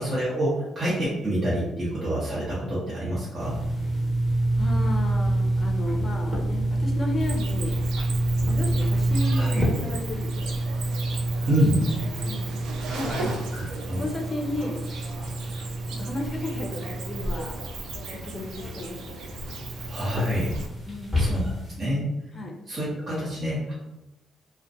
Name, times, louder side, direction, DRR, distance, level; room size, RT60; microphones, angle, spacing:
voice 1, 0.0-3.6 9.3-9.6 11.5-11.8 13.5-14.0 19.9-20.5 21.2-21.4 21.8-22.1 22.7-23.7, equal, 35° right, -9 dB, 0.9 m, -27 dB
sound 1, 3.4-21.8, right 1 dB, 10° right, 1.0 m, -28 dB
voice 2, 4.6-7.8 8.5-10.6 12.3-13.4 14.0-14.8 15.9-17.6 18.1-19.1 20.9-21.5 22.3-22.5, left 2 dB, 35° left, 1 dB, 0.5 m, -34 dB
Cricket, 7.2-20.7, right 4 dB, 85° right, 0.3 m, -38 dB
2.4 x 2.1 x 2.6 m, 0.97 s
cardioid pair, 80°, 0 cm